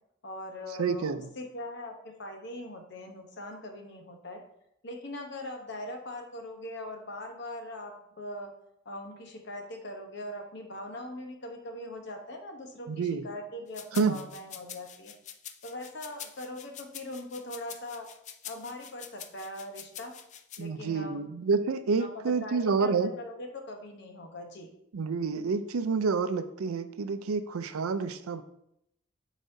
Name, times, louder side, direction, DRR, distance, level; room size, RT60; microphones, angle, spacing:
voice 1, 0.2-4.4 4.8-8.5 8.8-15.1 15.6-18.1 18.4-20.2 20.6-21.3 22.0-24.7, left 1 dB, 55° left, 4 dB, 0.9 m, -41 dB
voice 2, 0.8-1.3 12.9-13.2 13.9-14.2 20.6-23.1 24.9-28.4, right 5 dB, 90° right, 10 dB, 0.5 m, -28 dB
sound 1, 13.7-20.6, left 9 dB, 35° left, 0.3 m, -45 dB
9.0 x 4.1 x 2.7 m, 0.77 s
head